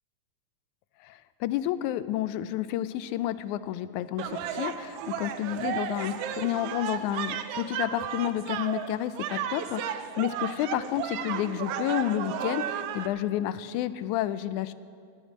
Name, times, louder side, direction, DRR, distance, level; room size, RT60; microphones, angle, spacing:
voice 1, 1.0-14.7, left 12 dB, 85° left, 14 dB, 2.0 m, -30 dB
sound 1, 4.2-13.1, right 9 dB, 80° right, 1.3 m, -34 dB
13.5 x 8.1 x 9.7 m, 2.3 s
omnidirectional pair, 3.4 m